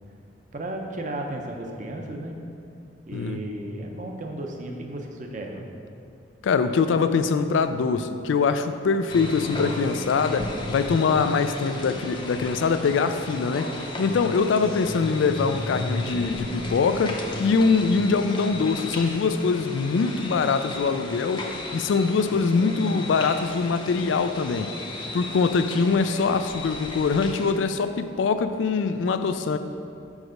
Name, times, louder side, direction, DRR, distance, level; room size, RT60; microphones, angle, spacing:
voice 1, 0.5-2.4 3.1-5.7, right 1 dB, 40° right, 2 dB, 0.7 m, -34 dB
voice 2, 6.4-13.7 14.0-24.7 25.1-29.6, left 5 dB, 85° left, 10 dB, 0.3 m, -23 dB
sound 1, 9.1-27.5, left 2 dB, 25° left, 0.6 m, -34 dB
5.3 x 4.8 x 6.3 m, 2.5 s
head